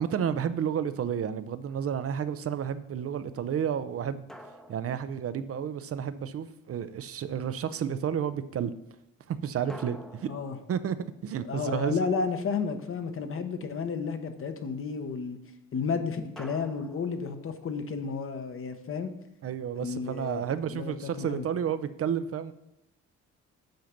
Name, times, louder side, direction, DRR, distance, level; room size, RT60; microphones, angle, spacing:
voice 1, 0.0-4.3 4.7-8.7 9.3-10.3 10.7-11.0 11.2-12.1 19.4-22.5, right 8 dB, 50° right, 13 dB, 0.6 m, -31 dB
sound 1, 1.7-2.2 4.3-6.1 9.7-12.3 16.4-18.0, equal, ahead, 0.8 m, -50 dB
voice 2, 11.4-15.4 15.7-19.1 19.8-20.4 20.7-21.5, left 5 dB, 45° left, 8 dB, 1.0 m, -32 dB
7.9 x 5.7 x 5.2 m, 0.86 s
cardioid pair, 90°, 30 cm